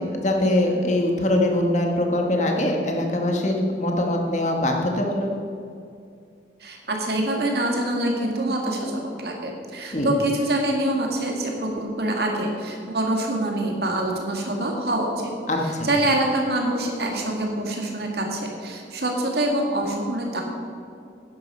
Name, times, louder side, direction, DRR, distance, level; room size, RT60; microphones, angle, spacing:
voice 1, 0.0-5.3 9.9-10.1 15.5-15.9, left 1 dB, 40° left, 2 dB, 1.6 m, -23 dB
voice 2, 6.6-15.3 15.6-20.4, right 1 dB, 60° right, 1 dB, 2.1 m, -25 dB
11.5 x 9.5 x 5.6 m, 2.4 s
head